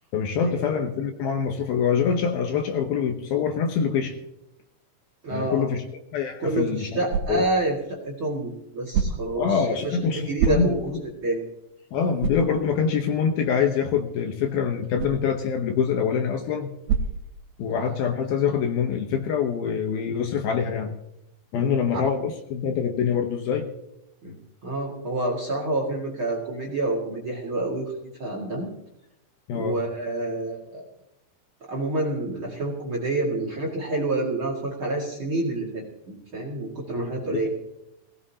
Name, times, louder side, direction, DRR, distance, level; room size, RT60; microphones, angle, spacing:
voice 1, 0.1-4.1 5.3-5.8 6.1-7.4 9.4-11.0 11.9-16.7 17.6-20.9 21.5-23.7 29.5-29.8 37.0-37.5, left 7 dB, 70° left, 4 dB, 2.5 m, -25 dB
voice 2, 5.2-5.7 6.4-11.0 11.2-11.4 21.5-22.0 24.2-27.9 28.2-28.7 29.5-30.8 31.7-37.5, right 2 dB, 40° right, 0 dB, 2.1 m, -28 dB
sound 1, 6.3-18.0, right 6 dB, 75° right, 3.2 m, -33 dB
20.0 x 16.5 x 2.8 m, 0.85 s
omnidirectional pair, 5.0 m